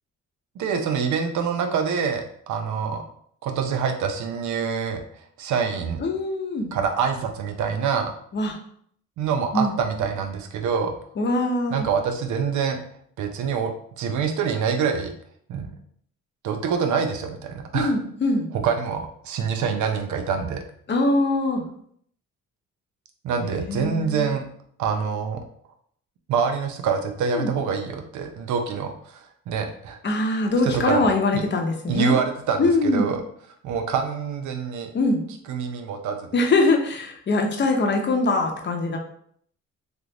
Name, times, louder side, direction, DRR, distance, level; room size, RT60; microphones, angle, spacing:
voice 1, 0.6-3.0 3.4-6.0 6.7-8.1 9.2-11.0 11.7-12.8 13.2-15.1 15.5-15.7 16.4-17.9 18.5-20.6 23.2-24.4 24.8-25.4 26.3-30.0 30.6-31.0 31.3-31.4 31.9-33.2 33.6-34.9 35.5-36.3, right 6 dB, 70° right, 5 dB, 0.6 m, -26 dB
voice 2, 6.0-6.7 8.3-8.6 9.5-9.7 11.2-11.8 17.7-18.5 20.9-21.6 23.4-24.3 27.3-27.5 30.0-32.2 32.6-33.1 34.9-35.2 36.3-39.0, left 2 dB, 35° left, 3 dB, 0.7 m, -22 dB
3.3 x 2.5 x 2.9 m, 0.63 s
cardioid pair, 90°, 30 cm